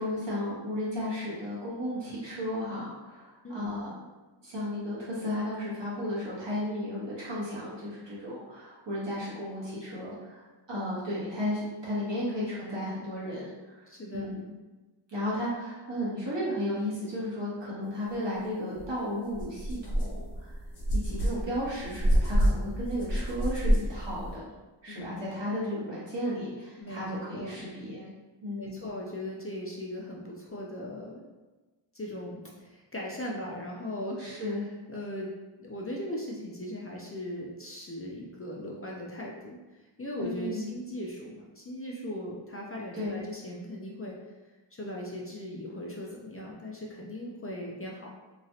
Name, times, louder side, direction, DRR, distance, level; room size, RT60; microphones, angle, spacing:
voice 1, 0.0-4.0 4.4-13.8 14.1-14.4 15.1-20.5 20.9-24.5 24.8-28.1 28.4-28.8 34.2-34.6 40.2-40.7 42.9-43.2, left 1 dB, 65° right, -8 dB, 1.3 m, -34 dB
voice 2, 13.9-14.3 24.9-25.3 26.8-27.6 28.6-31.2 31.9-34.3 34.9-35.3 35.6-39.6 40.0-44.1 44.7-48.1, left 1 dB, 30° left, -3 dB, 0.4 m, -38 dB
sound 1, 18.8-18.9 19.3-24.4, equal, 85° left, 0.8 m, -28 dB
3.0 x 2.4 x 2.7 m, 1.2 s
wide cardioid pair, 70°, 47 cm